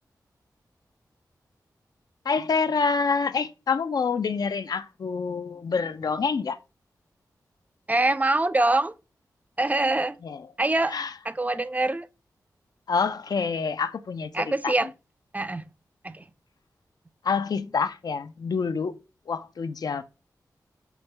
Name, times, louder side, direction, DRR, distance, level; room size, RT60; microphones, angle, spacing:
voice 1, 2.2-6.6 10.2-10.4 10.9-11.1 12.9-14.3 14.6-14.7 17.2-18.9 19.3-20.0, left 5 dB, 65° left, 0.4 m, -27 dB
voice 2, 7.9-8.9 9.6-10.2 10.6-11.0 11.2-12.1 14.3-14.9 15.3-15.6 16.0-16.3, right 2 dB, 20° right, 0.3 m, -24 dB
5.9 x 2.1 x 3.2 m
cardioid pair, 50°, 7 cm